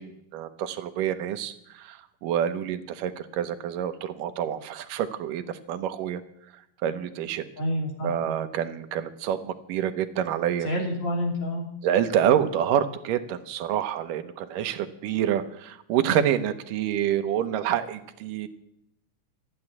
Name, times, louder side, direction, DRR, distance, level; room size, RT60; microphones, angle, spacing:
voice 1, 0.0-6.2 6.8-7.5 8.0-10.7 11.8-18.5, right 10 dB, 75° right, 9 dB, 2.4 m, -27 dB
voice 2, 7.6-8.1 10.6-11.7, equal, 50° left, -1 dB, 4.1 m, -28 dB
14.0 x 8.9 x 9.7 m, 0.78 s
omnidirectional pair, 4.1 m